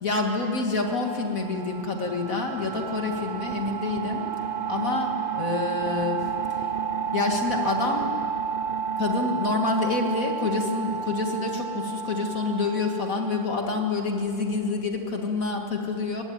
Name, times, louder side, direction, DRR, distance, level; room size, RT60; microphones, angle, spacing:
voice 1, 0.0-4.3 4.7-6.2 7.1-8.1 9.0-16.2, left 3 dB, 45° left, 3 dB, 2.3 m, -27 dB
sound 1, 0.8-14.2, right 7 dB, 55° right, 0.6 m, -31 dB
21.0 x 17.0 x 9.6 m, 2.9 s
omnidirectional pair, 2.1 m